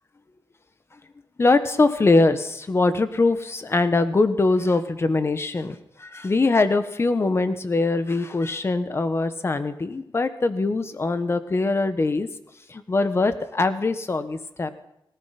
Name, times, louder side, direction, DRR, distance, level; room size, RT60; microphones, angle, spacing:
voice 1, 1.4-12.3 12.7-14.7, left 3 dB, 30° left, 10 dB, 1.4 m, -22 dB
25.0 x 17.5 x 6.0 m, 0.77 s
wide cardioid pair, 175°, 8 cm